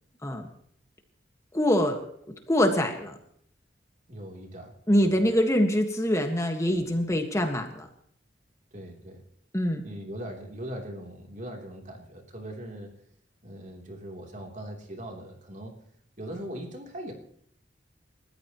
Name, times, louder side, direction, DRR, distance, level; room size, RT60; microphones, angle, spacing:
voice 1, 1.5-2.0 2.5-3.2 4.9-7.9 9.5-9.8, equal, 15° left, 5 dB, 1.6 m, -24 dB
voice 2, 4.1-5.1 8.7-9.3 9.8-13.0 13.4-15.9 16.2-17.1, right 1 dB, 45° right, 2 dB, 3.4 m, -40 dB
29.5 x 14.0 x 3.1 m, 0.66 s
head